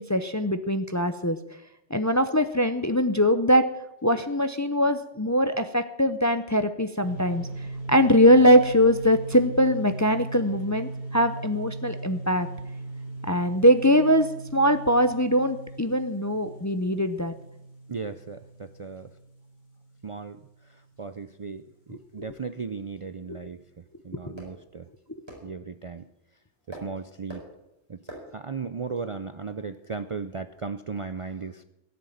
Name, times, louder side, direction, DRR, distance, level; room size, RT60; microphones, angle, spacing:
voice 1, 0.0-1.4 1.9-3.6 4.0-7.5 7.9-12.5 13.3-14.3 14.5-17.3 22.2-22.3 23.3-23.4 24.3-24.4, equal, 20° left, 10 dB, 0.5 m, -22 dB
sound 1, 7.0-20.5, right 2 dB, 45° left, 2.6 m, -38 dB
voice 2, 17.9-19.1 20.0-23.6 24.0-24.9 25.4-26.0 26.7-27.4 27.9-31.6, right 5 dB, 40° right, 10 dB, 0.5 m, -36 dB
sound 2, 21.8-30.7, right 1 dB, 25° right, 5.0 m, -50 dB
17.0 x 6.8 x 9.2 m, 0.87 s
omnidirectional pair, 1.1 m